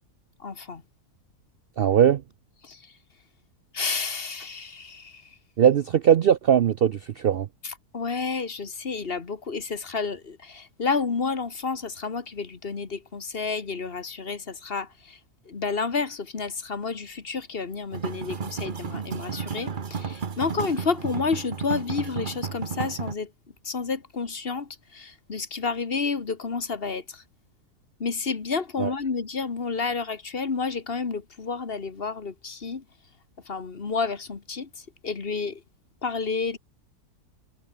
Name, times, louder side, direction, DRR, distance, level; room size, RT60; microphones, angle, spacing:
voice 1, 0.4-0.8 2.7-2.8 3.7-5.1 7.9-14.9 15.5-23.3 23.6-27.0 28.0-32.8 33.5-34.7 35.0-35.6 36.0-36.6, left 4 dB, 40° left, 1.7 m, -30 dB
voice 2, 1.8-2.2 5.6-7.5 28.8-28.9, right 9 dB, 80° right, 0.5 m, -20 dB
sound 1, 17.9-23.1, right 6 dB, 35° right, 1.1 m, -33 dB
omnidirectional pair, 1.6 m